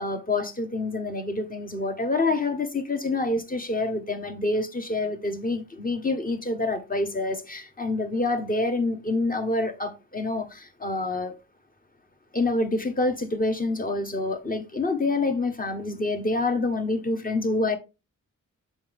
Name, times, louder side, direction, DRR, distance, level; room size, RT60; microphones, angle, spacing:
voice 1, 0.0-11.3 12.3-17.8, left 2 dB, 25° left, 1.3 m, -27 dB
7.1 x 5.4 x 3.5 m
cardioid pair, 75°, 32 cm